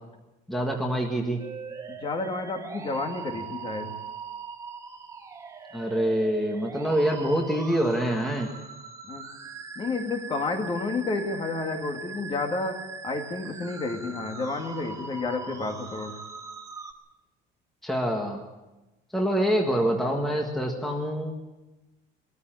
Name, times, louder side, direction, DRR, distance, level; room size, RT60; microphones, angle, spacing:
voice 1, 0.5-1.4 5.7-8.5 17.8-18.4 19.1-21.3, right 1 dB, ahead, 0 dB, 1.7 m, -26 dB
sound 1, 1.4-16.9, right 5 dB, 15° right, 1.3 m, -41 dB
voice 2, 1.9-3.9 9.0-9.2 9.8-12.8 13.0-16.1, left 3 dB, 25° left, 4 dB, 2.2 m, -30 dB
21.5 x 14.0 x 9.0 m, 1.1 s
cardioid pair, 180°, 20 cm